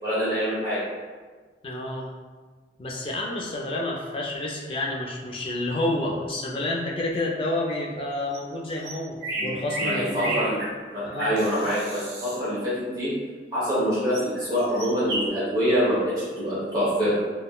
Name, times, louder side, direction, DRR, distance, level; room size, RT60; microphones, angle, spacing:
voice 1, 0.0-0.8 9.3-9.5 9.8-10.6 10.9-13.1 13.5-17.2, equal, 20° right, -11 dB, 1.0 m, -25 dB
voice 2, 1.6-2.1 2.8-10.3 11.0-11.3, left 1 dB, 30° left, -2 dB, 0.4 m, -29 dB
sound 1, 8.3-8.4 8.7-12.4 14.1-14.2 14.6-15.3, right 2 dB, 75° right, 0.9 m, -32 dB
3.5 x 2.2 x 2.2 m, 1.4 s
head